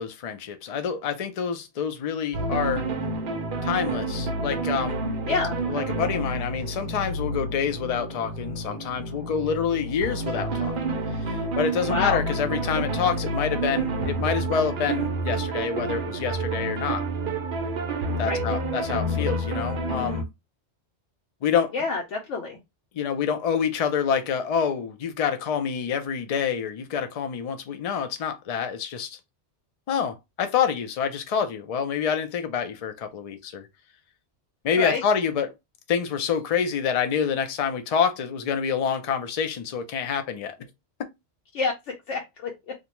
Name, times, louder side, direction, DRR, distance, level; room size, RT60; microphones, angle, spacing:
voice 1, 0.0-2.9 3.6-5.0 5.3-5.4 5.7-10.9 11.3-17.0 18.2-20.3 21.4-21.7 22.9-29.2 29.9-33.6 34.6-35.5 35.9-40.6, left 7 dB, 60° left, 0.4 m, -27 dB
sound 1, 2.3-20.2, right 2 dB, 60° right, 0.6 m, -29 dB
voice 2, 11.9-12.2 18.2-18.4 21.7-22.6 34.8-35.0 41.5-41.7 42.1-42.7, left 4 dB, 80° left, 1.0 m, -27 dB
2.5 x 2.2 x 2.9 m
omnidirectional pair, 1.2 m